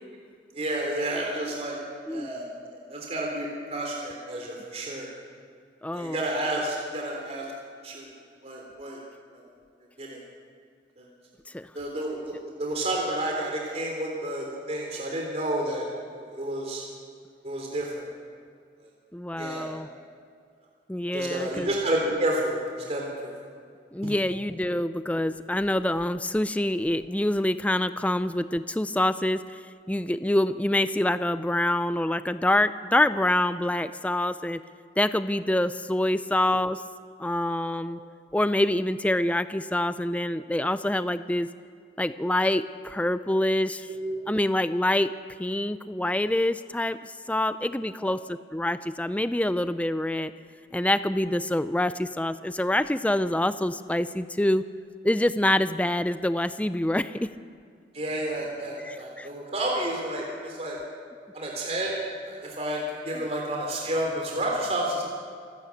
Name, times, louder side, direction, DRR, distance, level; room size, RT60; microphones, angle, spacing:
voice 1, 0.5-1.8 2.1-2.5 2.7-5.1 5.9-7.5 7.8-8.1 8.4-9.0 9.3-9.5 10.0-10.2 11.0-11.1 11.7-15.9 16.2-16.8 17.4-18.1 19.4-19.7 21.1-23.4 24.0-24.1 24.7-24.8 36.5-36.6 37.9-38.1 43.9-44.2 57.9-60.8 61.3-65.0, right 1 dB, 35° right, -1 dB, 3.5 m, -30 dB
voice 2, 5.8-6.2 11.5-11.7 19.1-19.9 20.9-21.7 23.9-29.6 29.9-34.6 35.0-36.8 37.2-38.0 38.3-41.5 42.0-43.9 44.3-45.1 45.4-50.3 50.7-54.6 55.0-57.3 58.9-59.3, left 1 dB, 10° left, 12 dB, 0.5 m, -26 dB
28.0 x 12.5 x 8.5 m, 2.1 s
head